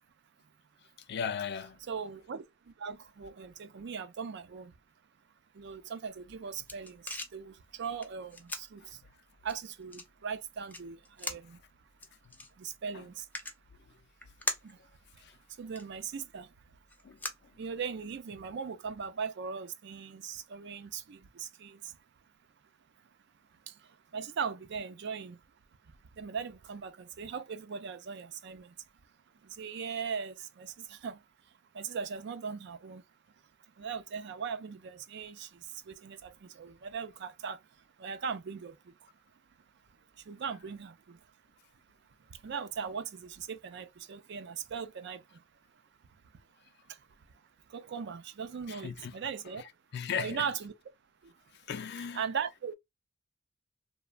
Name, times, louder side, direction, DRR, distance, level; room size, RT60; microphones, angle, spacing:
voice 1, 1.1-1.8 8.8-8.9 12.9-13.0 15.2-15.3 17.0-17.2 48.7-49.1 49.9-50.5 51.7-52.2, left 7 dB, 60° left, 0.4 m, -36 dB
voice 2, 1.8-2.5 2.8-4.7 5.6-9.0 9.4-11.6 12.6-13.2 14.6-14.8 15.6-16.5 17.6-21.9 23.7-23.8 24.1-25.4 26.2-28.7 29.4-31.2 31.7-33.0 33.8-37.6 38.0-38.8 40.3-41.2 42.4-45.2 47.7-49.6 50.2-50.7 52.1-52.7, right 6 dB, 60° right, 0.4 m, -39 dB
sound 1, 6.1-18.2, left 2 dB, 10° left, 0.5 m, -44 dB
3.0 x 2.1 x 2.2 m
head